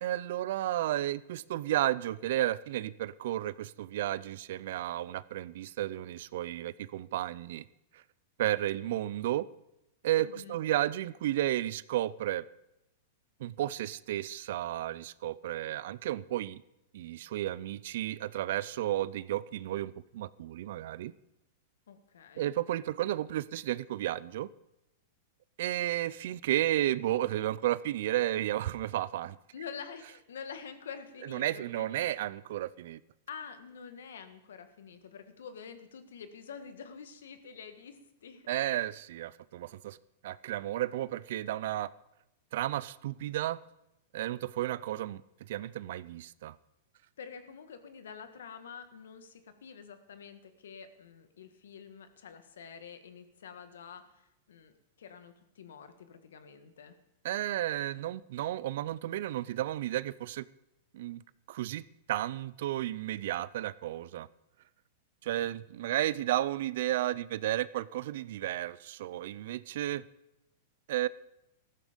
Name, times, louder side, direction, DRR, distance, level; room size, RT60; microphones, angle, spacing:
voice 1, 0.0-7.6 7.9-8.0 8.4-9.5 10.0-12.4 13.4-16.6 16.9-21.1 22.4-24.5 25.6-29.4 31.3-33.0 38.5-40.0 40.2-41.9 42.5-43.6 44.1-45.2 45.5-46.6 57.2-60.5 60.9-61.2 61.5-64.3 65.2-70.1 70.9-71.1, right 13 dB, 65° right, 20 dB, 0.5 m, -33 dB
voice 2, 10.2-10.6 21.9-22.5 29.5-32.1 33.3-38.5 47.2-57.0, left 6 dB, 85° left, 10 dB, 1.7 m, -47 dB
14.0 x 13.5 x 5.2 m, 0.87 s
hypercardioid pair, 135°, 0 cm